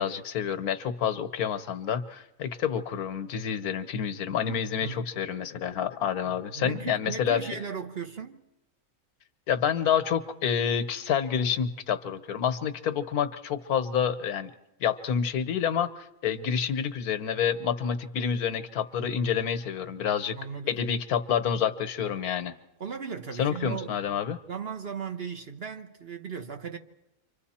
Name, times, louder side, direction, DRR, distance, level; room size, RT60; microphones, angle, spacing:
voice 1, 0.0-7.4 9.5-14.5 14.8-20.4 20.7-22.5 23.4-24.4, left 8 dB, 80° left, 1.5 m, -28 dB
voice 2, 6.2-8.5 20.3-20.8 22.8-26.8, right 6 dB, 45° right, 1.1 m, -37 dB
30.0 x 25.5 x 4.3 m
omnidirectional pair, 1.6 m